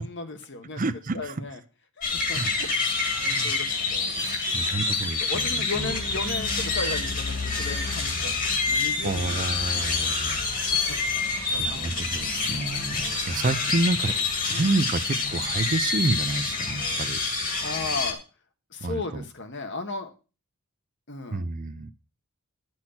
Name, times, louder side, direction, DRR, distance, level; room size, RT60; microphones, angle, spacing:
voice 1, 0.0-0.8 1.1-1.6 2.0-4.2 4.6-4.8 5.2-10.1 10.6-10.7 11.1-12.1 13.0-13.3 14.5-14.7 17.6-18.2 18.7-20.1 21.1-21.4, left 3 dB, 55° left, 1.4 m, -36 dB
voice 2, 0.7-1.4 2.3-2.5 3.2-3.6 4.5-5.9 9.0-10.4 11.6-13.0 13.3-17.2 18.8-19.2 21.3-21.9, right 2 dB, 35° right, 0.6 m, -29 dB
sound 1, 2.0-18.1, left 4 dB, 40° left, 2.0 m, -27 dB
10.0 x 6.2 x 5.8 m
head